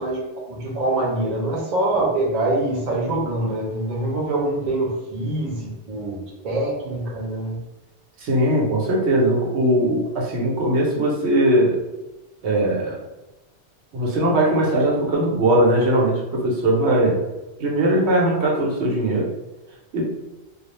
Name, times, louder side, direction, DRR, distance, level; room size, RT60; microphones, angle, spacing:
voice 1, 0.0-7.6, right 2 dB, 45° right, -3 dB, 0.6 m, -24 dB
voice 2, 8.2-11.8 12.4-13.0 13.9-17.2 17.6-19.3 19.9-20.0, right 1 dB, 85° right, -3 dB, 1.0 m, -20 dB
2.3 x 2.0 x 2.9 m, 1.0 s
omnidirectional pair, 1.1 m